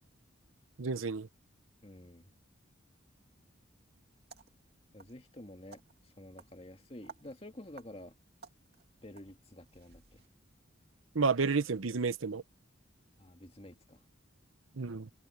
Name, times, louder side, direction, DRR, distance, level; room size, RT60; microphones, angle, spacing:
voice 1, 0.8-1.3 11.1-12.4 14.8-15.1, right 4 dB, 80° right, 0.8 m, -31 dB
voice 2, 1.8-2.3 4.9-8.1 9.0-10.2 13.2-14.0, left 1 dB, 30° left, 2.0 m, -50 dB
sound 1, 4.1-10.3, right 4 dB, 50° right, 2.7 m, -58 dB
open air
head